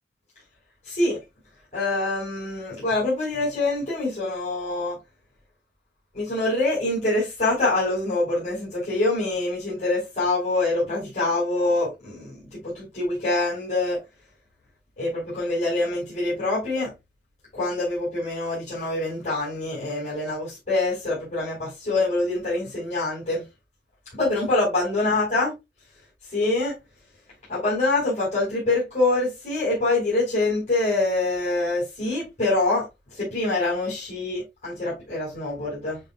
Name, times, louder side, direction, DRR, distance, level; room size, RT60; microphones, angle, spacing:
voice 1, 0.8-1.2 1.7-5.0 6.1-14.0 15.0-16.9 17.5-23.4 24.2-25.5 26.3-26.7 27.5-32.8 33.1-36.0, left 2 dB, 40° left, 5.0 m, -25 dB
10.0 x 5.3 x 2.4 m
head